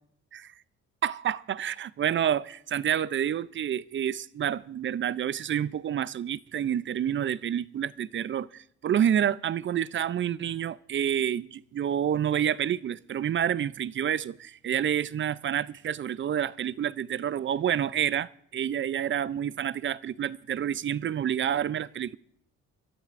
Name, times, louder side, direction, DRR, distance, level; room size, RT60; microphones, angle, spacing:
voice 1, 1.0-22.2, right 9 dB, 40° right, 0.4 m, -28 dB
27.5 x 13.0 x 2.5 m
cardioid pair, 90°, 30 cm